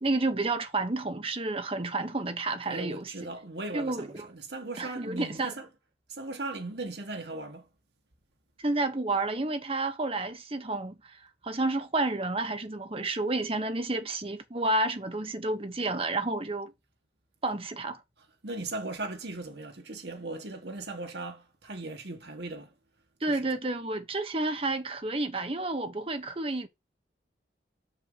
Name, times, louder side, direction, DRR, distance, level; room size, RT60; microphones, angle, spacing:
voice 1, 0.0-3.1 3.7-4.3 4.8-5.5 8.6-11.2 11.4-16.7 17.4-18.0 23.2-26.7, right 2 dB, 30° right, 1.0 m, -30 dB
voice 2, 2.6-5.7 6.1-7.7 18.4-22.7 23.3-23.5, right 2 dB, 70° right, 1.5 m, -38 dB
6.5 x 6.4 x 3.9 m
head